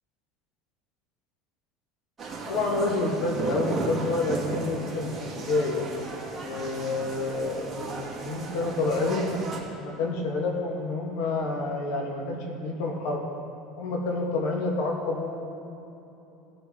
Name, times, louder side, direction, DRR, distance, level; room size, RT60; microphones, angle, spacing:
sound 1, 2.2-9.6, right 3 dB, 20° right, 2.7 m, -35 dB
voice 1, 2.5-5.9 6.3-9.4 9.8-13.2 13.8-15.5, left 3 dB, 70° left, 0 dB, 2.3 m, -28 dB
19.5 x 7.0 x 4.7 m, 3.0 s
supercardioid pair, 135°, 0 cm